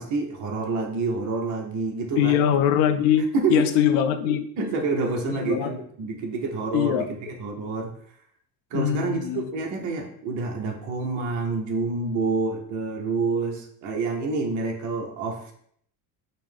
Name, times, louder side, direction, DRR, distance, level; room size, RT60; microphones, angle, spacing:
voice 1, 0.0-2.5 3.3-3.6 4.6-7.9 8.7-15.5, right 3 dB, 40° right, 1 dB, 0.6 m, -28 dB
voice 2, 2.2-4.5 5.3-5.7 6.7-7.0 8.7-9.4, left 9 dB, 80° left, 9 dB, 0.5 m, -22 dB
5.2 x 2.1 x 3.3 m, 0.65 s
cardioid pair, 170°, 46 cm